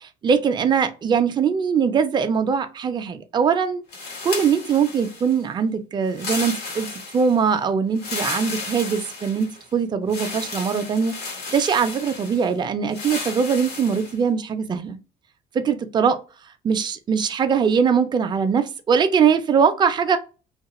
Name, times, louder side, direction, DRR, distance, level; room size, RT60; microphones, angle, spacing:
voice 1, 0.0-3.8 4.2-6.9 7.1-11.1 11.5-15.0 15.5-16.2 16.6-20.2, right 6 dB, 25° right, 0.4 m, -21 dB
sound 1, 3.9-5.4 6.1-7.4 8.0-9.6 10.1-12.5 12.9-14.2, left 3 dB, 85° left, 1.1 m, -33 dB
2.3 x 2.0 x 3.0 m
cardioid pair, 110°, 17 cm